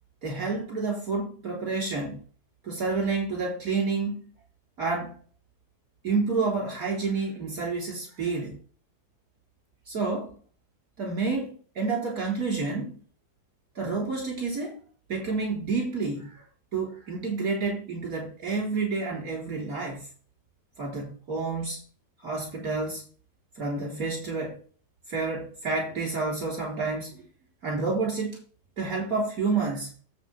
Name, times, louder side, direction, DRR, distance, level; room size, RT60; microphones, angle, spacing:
voice 1, 0.2-2.2 2.6-4.3 4.8-5.2 6.0-8.6 9.9-10.3 11.0-13.0 13.8-14.8 15.1-16.4 16.7-20.1 20.8-21.8 22.2-23.0 23.6-24.6 25.1-27.2 27.6-28.4 28.8-29.9, right 4 dB, 55° right, 4.3 m, -29 dB
9.1 x 8.1 x 3.4 m
omnidirectional pair, 1.8 m